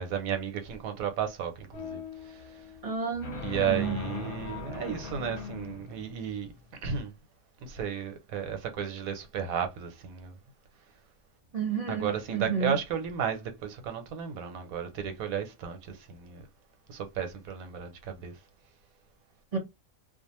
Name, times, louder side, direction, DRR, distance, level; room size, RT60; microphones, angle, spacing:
voice 1, 0.0-2.6 3.4-6.5 6.8-7.1 7.6-10.4 11.9-16.4 16.9-18.3, right 8 dB, 85° right, 1.1 m, -34 dB
sound 1, 1.7-6.8, left 4 dB, 50° left, 0.9 m, -39 dB
voice 2, 2.8-4.0 11.5-12.7 19.5-19.6, right 5 dB, 35° right, 0.6 m, -31 dB
2.4 x 2.4 x 2.9 m
omnidirectional pair, 1.4 m